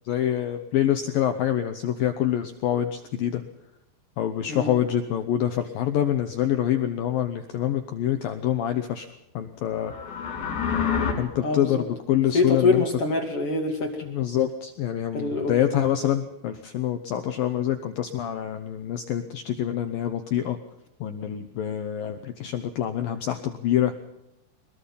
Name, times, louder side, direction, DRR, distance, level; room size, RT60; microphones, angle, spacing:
voice 1, 0.1-3.4 4.2-9.1 9.3-9.9 10.2-10.3 11.2-12.8 14.1-20.6 21.0-23.9, left 11 dB, 80° left, 8 dB, 2.0 m, -26 dB
sound 1, 9.7-11.1, left 7 dB, 65° left, 6.8 m, -27 dB
voice 2, 11.4-11.8 12.3-14.0 15.1-15.6, left 3 dB, 40° left, 3 dB, 2.4 m, -25 dB
22.5 x 21.5 x 5.7 m, 0.85 s
omnidirectional pair, 5.7 m